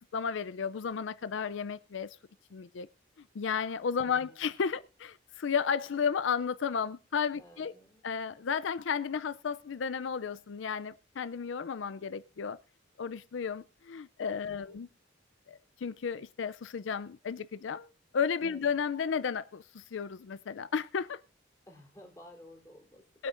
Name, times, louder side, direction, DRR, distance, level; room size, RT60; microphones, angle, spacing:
voice 1, 0.1-2.2 2.5-2.9 3.3-7.7 8.0-12.6 13.0-14.9 15.5-17.9 18.1-21.2 23.2-23.3, left 6 dB, 75° left, 0.4 m, -33 dB
voice 2, 4.1-4.5 7.4-8.0 14.5-14.8 18.5-18.6 21.7-23.0, left 1 dB, 15° left, 3.4 m, -54 dB
22.0 x 8.5 x 2.5 m
head